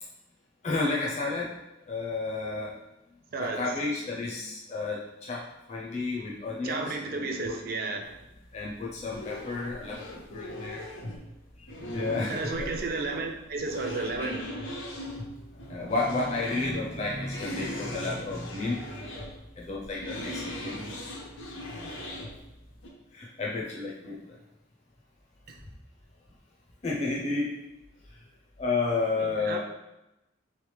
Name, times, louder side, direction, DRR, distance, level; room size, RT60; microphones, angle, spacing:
voice 1, 0.6-1.6 1.9-2.8 3.4-7.6 8.5-10.1 10.3-10.8 11.6-11.7 11.9-12.7 15.5-19.1 19.6-20.8 23.1-24.3 26.8-27.5 28.6-29.6, left 3 dB, 35° left, -4 dB, 0.5 m, -31 dB
voice 2, 6.6-8.1 12.3-14.4 29.2-29.6, right 3 dB, 50° right, 2 dB, 0.4 m, -32 dB
sound 1, 8.0-22.9, left 1 dB, 75° left, 0.7 m, -40 dB
3.3 x 3.2 x 3.3 m, 0.92 s
head